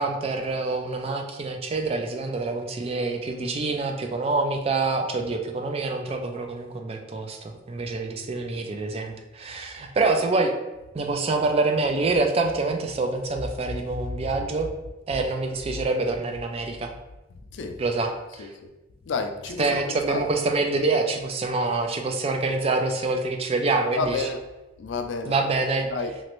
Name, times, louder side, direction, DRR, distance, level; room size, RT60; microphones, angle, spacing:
voice 1, 0.0-10.5 10.9-14.7 15.1-16.9 17.8-18.5 19.6-24.2 25.3-25.9, right 3 dB, 30° right, 0.3 m, -26 dB
voice 2, 13.7-14.3 17.5-17.8 18.4-18.7 19.1-20.2 24.0-24.4 24.8-25.4 25.8-26.2, left 3 dB, 70° left, 0.4 m, -31 dB
3.0 x 2.5 x 3.0 m
head